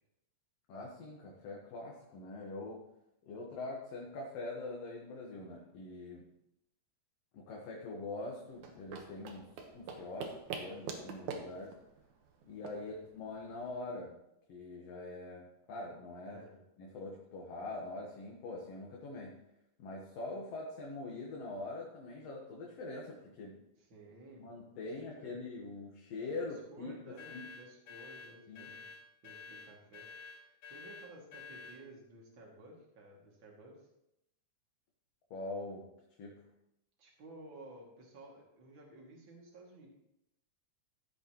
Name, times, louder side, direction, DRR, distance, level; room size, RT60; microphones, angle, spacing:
voice 1, 0.7-2.9 3.3-6.2 7.3-11.8 12.4-14.1 14.5-16.4 16.8-19.5 19.8-23.6 24.4-26.9 27.3-27.5 28.5-28.7 35.3-35.9 36.2-36.5, left 2 dB, 60° left, -2 dB, 2.1 m, -43 dB
sound 1, 8.5-13.7, right 5 dB, 75° right, 2.5 m, -45 dB
voice 2, 16.2-16.6 23.8-24.4 25.0-25.5 26.4-28.9 29.2-33.9 37.0-39.9, right 2 dB, 40° right, -2 dB, 2.8 m, -54 dB
sound 2, 27.2-31.8, left 5 dB, 75° left, 2.8 m, -50 dB
13.5 x 8.8 x 3.0 m, 0.83 s
omnidirectional pair, 3.6 m